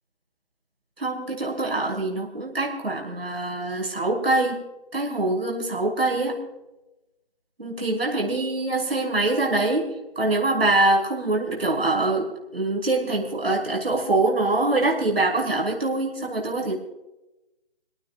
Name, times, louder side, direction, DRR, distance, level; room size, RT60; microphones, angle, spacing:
voice 1, 1.0-4.6 4.9-6.4 7.6-16.7, right 2 dB, 80° right, -1 dB, 6.4 m, -24 dB
28.5 x 18.5 x 2.5 m, 0.96 s
figure-of-eight pair, 165°, 30 cm